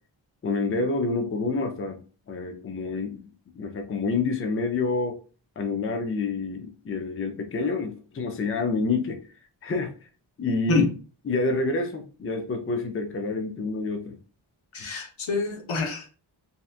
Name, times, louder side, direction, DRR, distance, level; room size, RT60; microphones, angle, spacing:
voice 1, 0.4-3.2 3.6-5.2 5.6-9.2 9.6-9.9 10.4-10.9 11.2-14.2 14.8-14.9, left 3 dB, 30° left, 4 dB, 0.5 m, -28 dB
voice 2, 14.7-16.1, left 4 dB, 80° left, 3 dB, 0.8 m, -26 dB
2.7 x 2.2 x 2.4 m, 0.36 s
cardioid pair, 70°, 48 cm